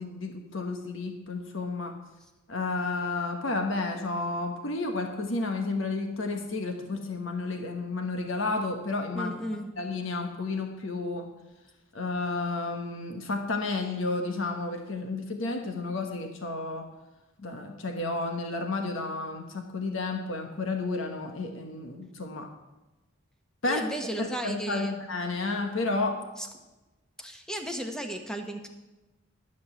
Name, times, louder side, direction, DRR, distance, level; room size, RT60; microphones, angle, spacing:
voice 1, 0.0-1.9 2.5-9.3 9.8-11.3 11.9-16.9 17.4-22.5 23.6-23.8 24.2-26.2, left 3 dB, 70° left, 4 dB, 1.3 m, -31 dB
voice 2, 9.1-9.7 23.6-25.0 26.4-26.5 27.2-28.7, right 1 dB, 5° left, 4 dB, 1.1 m, -35 dB
12.0 x 5.4 x 8.0 m, 1.1 s
head